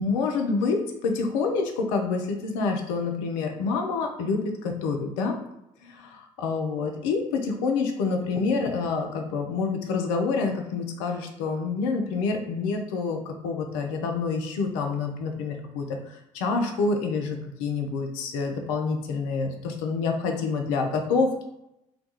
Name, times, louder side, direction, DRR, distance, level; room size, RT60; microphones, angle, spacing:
voice 1, 0.0-5.4 5.9-21.4, left 4 dB, 65° left, 3 dB, 0.4 m, -27 dB
2.2 x 2.2 x 2.8 m, 0.85 s
figure-of-eight pair, 50°, 18 cm